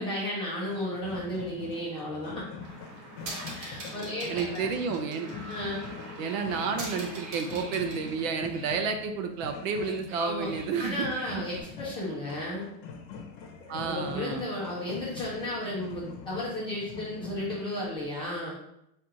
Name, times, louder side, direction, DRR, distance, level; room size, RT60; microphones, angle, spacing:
voice 1, 0.0-2.4 3.5-4.7 5.5-5.8 10.2-10.5 10.8-12.7 13.7-18.5, left 1 dB, 10° left, -7 dB, 0.5 m, -34 dB
sound 1, 0.7-17.9, left 5 dB, 45° left, 0.9 m, -44 dB
sound 2, 2.6-8.7 9.6-11.6, right 1 dB, 30° right, 0.9 m, -43 dB
voice 2, 4.3-5.3 6.2-11.4 13.7-14.4, right 5 dB, 55° right, 6 dB, 0.6 m, -31 dB
4.4 x 2.5 x 4.8 m, 0.79 s
supercardioid pair, 180°, 47 cm